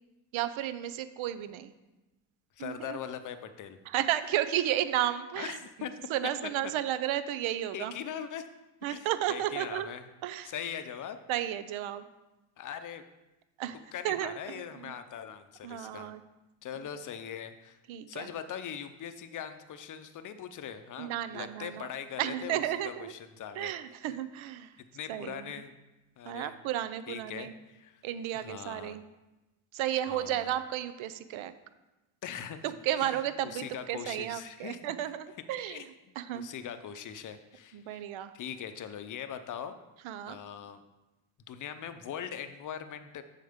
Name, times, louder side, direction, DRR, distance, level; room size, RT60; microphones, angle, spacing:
voice 1, 0.3-1.7 2.6-3.0 3.9-5.6 6.1-7.9 8.8-9.9 10.2-10.5 11.3-12.1 13.6-13.8 14.0-14.9 15.6-16.2 17.9-18.3 21.0-21.9 22.2-23.1 23.6-24.7 25.1-25.5 26.2-27.5 28.0-29.0 29.7-31.5 32.6-35.9 36.2-36.5 37.7-38.3 40.0-40.4, right 12 dB, 70° right, 12 dB, 0.7 m, -33 dB
voice 2, 2.6-3.8 5.4-5.9 7.7-8.4 8.9-10.0 10.4-11.2 12.6-13.0 13.9-16.1 16.6-17.8 18.1-23.7 24.8-25.7 26.2-26.5 27.1-28.0 28.3-29.0 30.1-30.5 32.2-32.7 33.0-34.8 35.7-35.8 36.3-38.0 38.3-39.8 40.3-40.8 41.5-43.2, left 8 dB, 40° left, 10 dB, 0.6 m, -41 dB
7.6 x 6.4 x 3.6 m, 1.0 s
cardioid pair, 120°, 49 cm